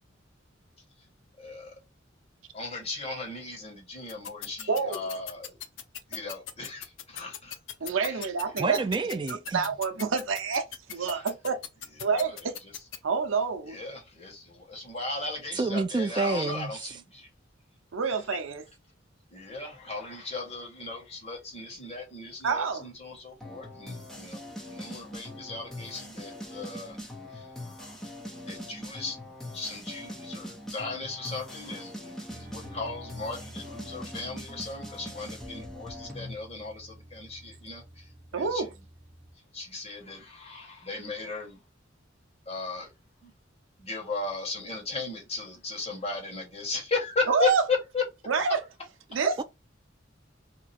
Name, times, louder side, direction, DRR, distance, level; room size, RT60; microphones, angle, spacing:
voice 1, 1.4-1.7 2.5-5.6 6.1-7.5 8.0-8.2 11.1-11.2 12.0-12.7 13.7-17.3 19.3-27.0 27.3-28.0 28.5-29.2 29.5-38.7 39.5-41.6 42.5-42.9 43.2-43.3 43.8-48.0, left 3 dB, 35° left, 1.6 m, -36 dB
sound 1, 4.1-13.0, left 10 dB, 75° left, 0.6 m, -38 dB
voice 2, 7.8-8.8 9.5-11.6 12.0-12.5 13.0-13.8 17.9-18.6 22.4-22.9 38.3-38.7 47.3-47.6 48.3-48.6 49.1-49.4, right 5 dB, 85° right, 0.6 m, -27 dB
voice 3, 8.6-9.6 15.6-16.7 49.4-49.5, right 3 dB, 25° right, 0.3 m, -28 dB
sound 2, 23.4-36.3, left 1 dB, ahead, 1.0 m, -42 dB
sound 3, 32.3-39.3, right 1 dB, 45° right, 0.9 m, -49 dB
2.9 x 2.4 x 4.2 m
head